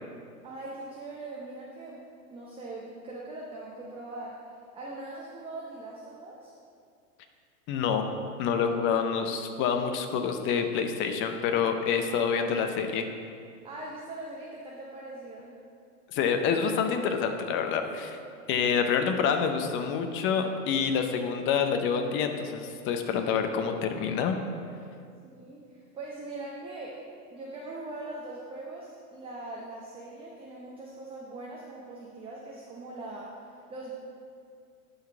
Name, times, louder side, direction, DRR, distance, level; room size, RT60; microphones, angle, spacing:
voice 1, 0.4-2.0 2.3-4.4 4.7-6.5 13.6-15.5 18.6-18.8 25.2-27.0 27.3-33.9, right 2 dB, 10° right, -3 dB, 0.7 m, -41 dB
voice 2, 7.7-8.0 8.4-13.1 16.1-18.2 18.5-24.4, left 6 dB, 25° left, 6 dB, 0.6 m, -27 dB
11.0 x 4.1 x 4.4 m, 2.3 s
hypercardioid pair, 120°, 46 cm